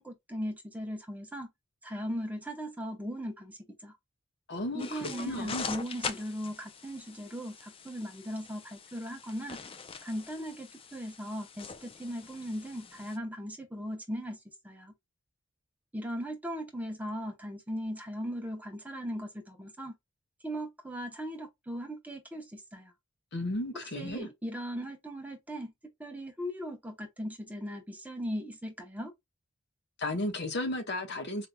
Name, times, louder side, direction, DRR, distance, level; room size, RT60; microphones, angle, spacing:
voice 1, 0.0-1.5 1.8-4.0 4.7-9.6 10.0-14.4 14.6-14.9 15.9-19.9 20.4-22.9 23.9-25.7 26.0-29.1, equal, 10° right, 0.9 m, -38 dB
voice 2, 4.5-5.7 23.3-24.3 30.0-31.5, left 1 dB, 55° left, 1.1 m, -34 dB
sound 1, 4.8-13.2, left 5 dB, 25° left, 0.4 m, -43 dB
4.7 x 2.8 x 2.2 m
head